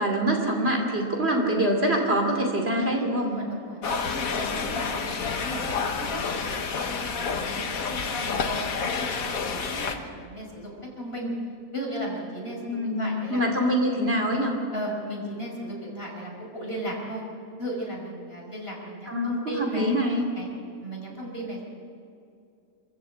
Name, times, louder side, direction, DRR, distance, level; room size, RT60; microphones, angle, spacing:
voice 1, 0.0-3.3 12.6-14.5 19.1-20.2, equal, 40° right, 1 dB, 2.9 m, -25 dB
voice 2, 2.7-3.8 4.2-11.3 11.7-13.7 14.7-17.2 17.6-20.0 20.4-20.5 20.8-21.6, equal, 40° left, -2 dB, 5.5 m, -36 dB
sound 1, 3.8-10.0, left 5 dB, 65° left, 1.7 m, -29 dB
27.0 x 14.5 x 8.2 m, 2.5 s
omnidirectional pair, 1.6 m